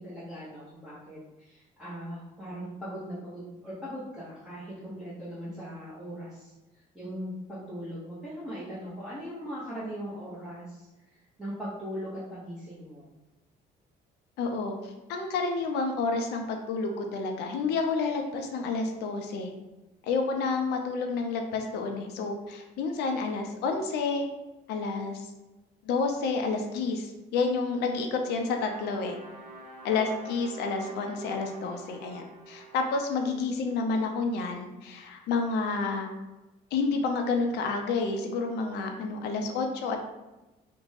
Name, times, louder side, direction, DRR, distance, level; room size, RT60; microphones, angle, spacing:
voice 1, 0.0-13.1 33.2-33.4, equal, 5° right, -10 dB, 0.7 m, -40 dB
voice 2, 14.4-19.5 20.0-24.3 24.7-25.3 25.8-29.2 29.8-36.1 36.7-40.0, left 4 dB, 80° left, 3 dB, 0.5 m, -29 dB
sound 1, 28.2-34.4, right 2 dB, 60° right, 0.8 m, -48 dB
2.5 x 2.1 x 3.1 m, 1.1 s
cardioid pair, 110°, 17 cm